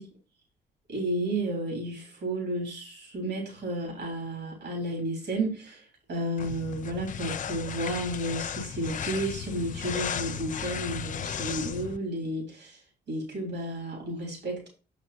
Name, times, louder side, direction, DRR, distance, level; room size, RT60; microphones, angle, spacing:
voice 1, 0.9-12.8 13.1-14.7, right 1 dB, 70° right, 0 dB, 3.5 m, -32 dB
sound 1, 6.4-12.0, left 8 dB, 45° left, 0.5 m, -35 dB
6.5 x 5.2 x 4.2 m, 0.34 s
supercardioid pair, 55°, 18 cm